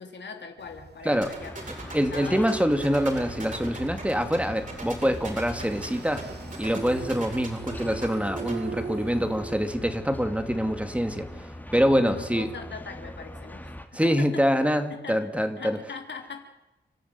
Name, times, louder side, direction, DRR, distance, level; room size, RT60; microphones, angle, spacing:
voice 1, 0.0-2.4 12.0-14.4 14.9-15.2 15.6-16.5, left 5 dB, 80° left, 5 dB, 3.3 m, -40 dB
sound 1, 0.6-9.9, right 5 dB, 65° right, 1.8 m, -42 dB
sound 2, 1.2-8.5, right 3 dB, 45° right, 7.5 m, -40 dB
sound 3, 1.4-13.8, equal, 10° left, 2.8 m, -41 dB
voice 2, 1.9-6.3 6.6-12.5 13.9-15.8, equal, 5° right, 7 dB, 2.4 m, -25 dB
30.0 x 13.0 x 9.5 m, 1.1 s
wide cardioid pair, 80°, 18 cm